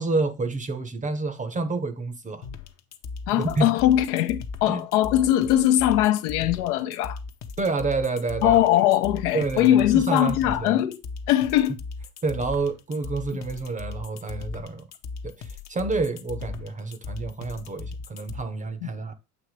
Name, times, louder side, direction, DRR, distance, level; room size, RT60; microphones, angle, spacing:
voice 1, 0.0-2.4 3.3-3.7 4.7-4.8 7.6-8.6 9.3-10.8 12.2-14.9 15.2-19.1, right 3 dB, 15° right, 0.7 m, -28 dB
sound 1, 2.4-18.4, left 4 dB, 35° left, 0.8 m, -37 dB
voice 2, 3.3-7.2 8.4-11.0 11.3-11.8 18.8-18.9, left 13 dB, 70° left, 0.8 m, -21 dB
8.0 x 2.9 x 4.6 m
hypercardioid pair, 100°, 46 cm